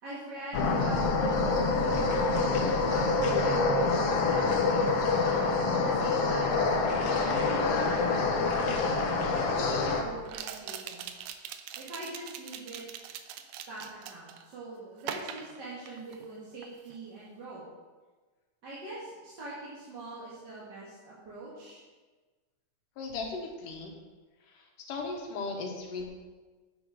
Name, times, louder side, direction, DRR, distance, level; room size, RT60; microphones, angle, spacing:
voice 1, 0.0-6.6 7.2-11.2 11.8-12.8 13.7-17.6 18.6-21.8, right 2 dB, 40° right, -8 dB, 2.2 m, -43 dB
sound 1, 0.5-10.0, left 3 dB, 65° left, 1.7 m, -26 dB
sound 2, 8.6-8.7 10.3-14.5 15.0-16.3 16.6-17.0, right 9 dB, 75° right, 1.7 m, -42 dB
voice 2, 23.0-23.9 24.5-26.0, left 3 dB, 85° left, 1 dB, 2.9 m, -37 dB
9.2 x 7.8 x 5.0 m, 1.3 s
omnidirectional pair, 3.7 m